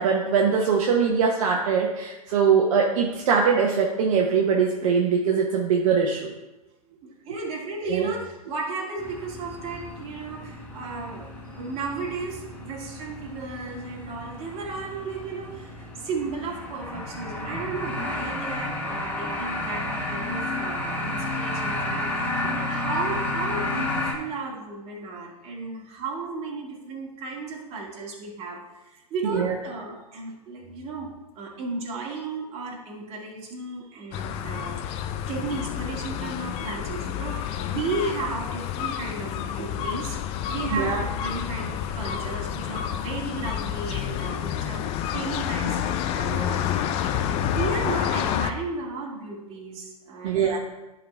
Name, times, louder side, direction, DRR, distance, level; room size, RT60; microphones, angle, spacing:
voice 1, 0.0-6.3 7.9-8.1 29.2-29.5 40.7-41.0 50.2-50.6, right 6 dB, 60° right, -1 dB, 1.0 m, -22 dB
voice 2, 7.0-31.1 31.4-35.0 35.3-44.9 45.1-50.6, right 3 dB, 30° right, -2 dB, 2.2 m, -34 dB
sound 1, 9.0-24.1, left 1 dB, 10° left, 1.5 m, -32 dB
sound 2, 34.1-48.5, left 9 dB, 30° left, 0.5 m, -29 dB
11.0 x 3.9 x 4.4 m, 1.0 s
hypercardioid pair, 115°, 19 cm